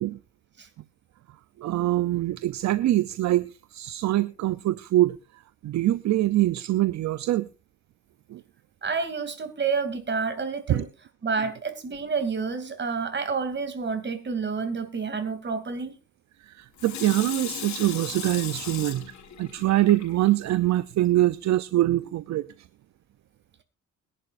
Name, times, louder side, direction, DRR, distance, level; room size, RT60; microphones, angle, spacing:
voice 1, 1.6-5.2 5.6-7.5 8.3-8.4 10.7-10.8 16.5-19.1 19.4-22.5, right 15 dB, 65° right, 0.6 m, -24 dB
voice 2, 8.8-10.9 11.2-16.0, right 5 dB, 35° right, 2.7 m, -29 dB
Water tap faucet / Sink (filling or washing), 16.8-20.5 21.0-21.1, left 8 dB, 65° left, 4.0 m, -37 dB
22.5 x 11.0 x 2.5 m
cardioid pair, 90°, 30 cm